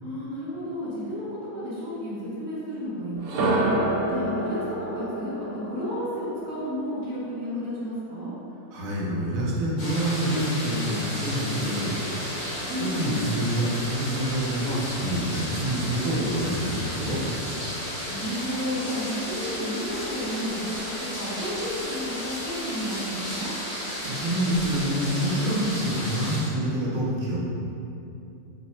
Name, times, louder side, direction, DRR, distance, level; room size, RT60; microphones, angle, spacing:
voice 1, 0.0-3.7 4.1-8.3 12.7-13.2 18.1-20.8 21.1-23.5, equal, 40° right, -12 dB, 1.0 m, -32 dB
sound 1, 3.2-7.1, right 1 dB, 80° right, 1.2 m, -28 dB
voice 2, 8.7-11.9 12.3-12.5 12.8-17.2 24.0-27.4, right 1 dB, 65° right, -5 dB, 1.0 m, -27 dB
sound 2, 9.8-26.4, equal, 85° left, 2.1 m, -33 dB
3.9 x 2.0 x 4.1 m, 2.8 s
omnidirectional pair, 1.8 m